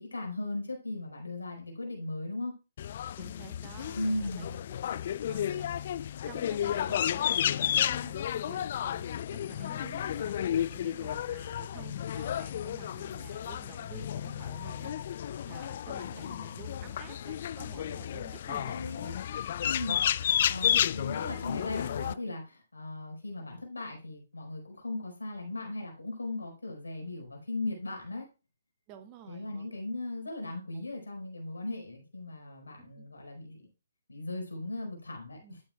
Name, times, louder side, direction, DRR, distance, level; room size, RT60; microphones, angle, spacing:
voice 1, 0.0-2.5 3.9-4.6 18.7-19.2 19.6-20.0 20.5-28.3 29.3-33.6 34.1-35.6, left 2 dB, 85° left, 2 dB, 4.7 m, -37 dB
sound 1, 2.8-22.1, left 10 dB, 50° left, 0.3 m, -32 dB
voice 2, 3.2-4.5 4.9-18.8 19.8-20.1 28.9-29.7 30.7-30.9 32.8-33.1 35.4-35.6, right 8 dB, 30° right, 8 dB, 1.3 m, -51 dB
11.5 x 8.9 x 2.3 m, 0.31 s
figure-of-eight pair, 135°, 0 cm